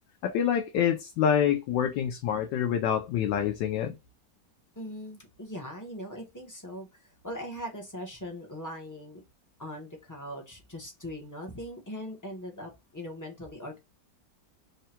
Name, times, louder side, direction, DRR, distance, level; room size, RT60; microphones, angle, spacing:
voice 1, 0.2-4.0, left 9 dB, 80° left, 1.2 m, -26 dB
voice 2, 4.8-6.9 7.2-9.2 9.6-13.8, equal, 20° left, 0.5 m, -40 dB
3.6 x 2.2 x 4.2 m
omnidirectional pair, 2.0 m